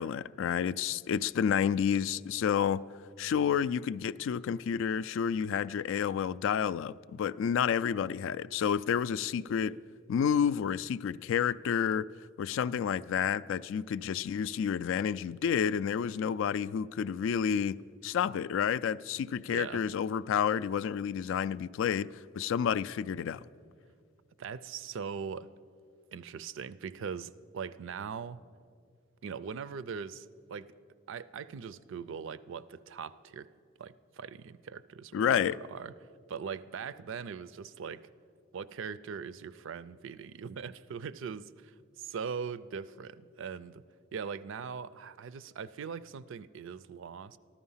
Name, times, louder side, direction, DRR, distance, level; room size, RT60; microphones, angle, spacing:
voice 1, 0.0-2.8 3.2-9.7 10.1-12.1 12.4-23.4 35.1-35.6, left 8 dB, 70° left, 0.3 m, -30 dB
voice 2, 19.5-19.8 24.4-25.5 26.1-28.5 29.2-30.7 31.1-33.5 33.8-35.9 36.3-38.1 38.5-43.8 44.1-47.4, right 6 dB, 65° right, 0.4 m, -41 dB
14.0 x 12.5 x 5.6 m
head